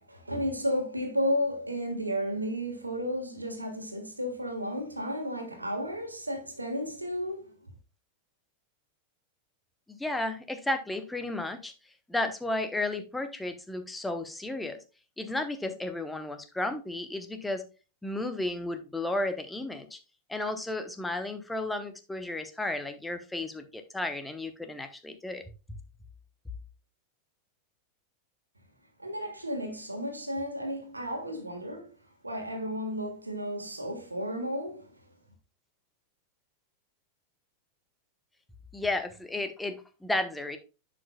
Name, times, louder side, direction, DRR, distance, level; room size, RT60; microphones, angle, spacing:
voice 1, 0.0-7.6 29.0-32.0 32.2-35.0, equal, 85° right, 1.6 m, -33 dB
voice 2, 9.9-11.7 12.1-14.8 15.2-17.6 18.0-20.0 20.3-25.4 38.7-39.8 40.0-40.6, left 2 dB, 5° left, 0.8 m, -33 dB
11.0 x 5.1 x 2.3 m
figure-of-eight pair, 90°, 0 cm